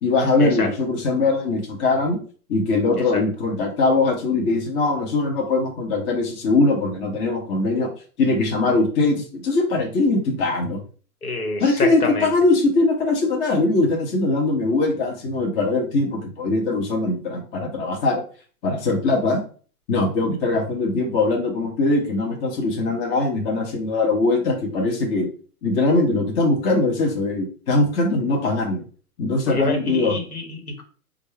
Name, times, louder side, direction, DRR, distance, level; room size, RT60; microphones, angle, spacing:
voice 1, 0.0-2.2 2.5-7.9 8.2-10.8 11.6-18.2 18.6-19.4 19.9-25.3 25.6-28.8 29.2-30.2, left 3 dB, 25° left, 1 dB, 0.7 m, -21 dB
voice 2, 11.2-12.3 29.5-30.8, left 3 dB, 80° left, 3 dB, 1.3 m, -27 dB
4.3 x 2.4 x 3.2 m, 0.41 s
figure-of-eight pair, 115°, 44 cm